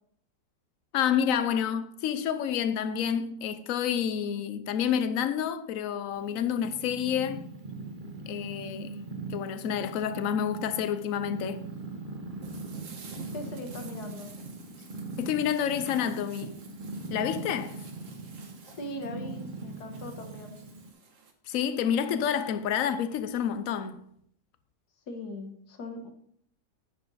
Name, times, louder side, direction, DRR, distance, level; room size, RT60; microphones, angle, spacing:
voice 1, 0.9-7.5 8.3-9.0 9.3-11.7 15.2-16.6 17.1-17.8 21.5-24.0, left 8 dB, 60° left, 1.1 m, -29 dB
Purr, 6.1-20.9, right 3 dB, 35° right, 1.2 m, -41 dB
sound 1, 12.4-21.3, right 5 dB, 55° right, 1.5 m, -49 dB
voice 2, 13.3-14.3 18.8-20.6 25.1-26.1, left 1 dB, 80° left, 1.8 m, -40 dB
10.0 x 6.9 x 4.1 m
omnidirectional pair, 1.7 m